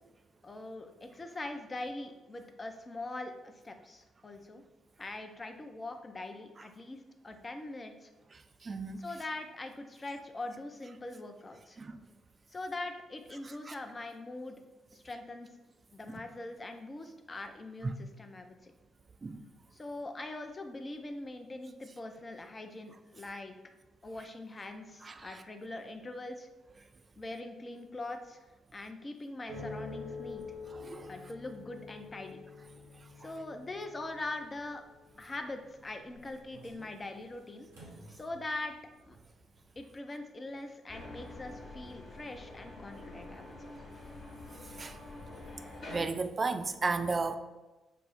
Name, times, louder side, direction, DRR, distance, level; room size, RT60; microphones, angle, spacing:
voice 1, 0.4-4.6 5.0-7.0 7.2-8.1 9.0-11.8 12.5-14.6 14.9-15.5 15.9-18.7 19.7-23.6 24.0-26.5 27.2-28.4 28.7-30.4 31.1-32.4 33.2-34.8 35.2-37.7 38.1-38.7 39.0-39.2 39.8-43.5, left 2 dB, 30° left, 0.5 m, -42 dB
voice 2, 8.6-9.0 11.8-12.0 13.7-13.8 19.2-19.4 25.0-25.1 30.7-31.1 44.8-45.0 45.9-47.4, right 4 dB, 35° right, 0.3 m, -33 dB
sound 1, 29.5-38.7 39.0-39.6, left 3 dB, 85° right, 1.0 m, -48 dB
sound 2, 40.9-46.0, left 2 dB, 55° left, 1.1 m, -47 dB
5.4 x 2.0 x 3.9 m
figure-of-eight pair, 40°, 0 cm